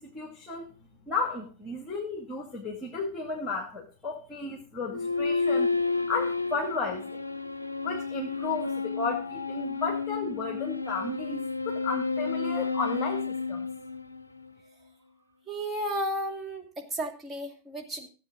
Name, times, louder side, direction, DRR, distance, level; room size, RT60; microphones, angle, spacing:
voice 1, 0.0-5.7 6.1-7.2 7.8-13.7, left 4 dB, 20° left, 0 dB, 2.4 m, -34 dB
sound 1, 4.9-14.5, left 4 dB, 85° left, 0.5 m, -31 dB
voice 2, 15.5-18.1, equal, 15° right, 1 dB, 2.4 m, -33 dB
15.5 x 8.4 x 3.9 m, 0.34 s
figure-of-eight pair, 90°, 0 cm